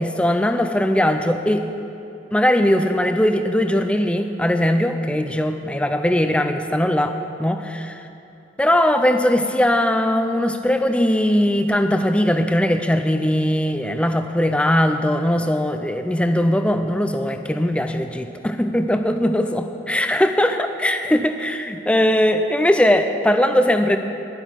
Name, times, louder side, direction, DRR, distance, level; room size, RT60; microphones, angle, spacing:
voice 1, 0.0-1.6 2.3-8.0 8.6-24.0, left 1 dB, 5° left, 7 dB, 0.5 m, -20 dB
11.5 x 8.9 x 5.8 m, 2.7 s
head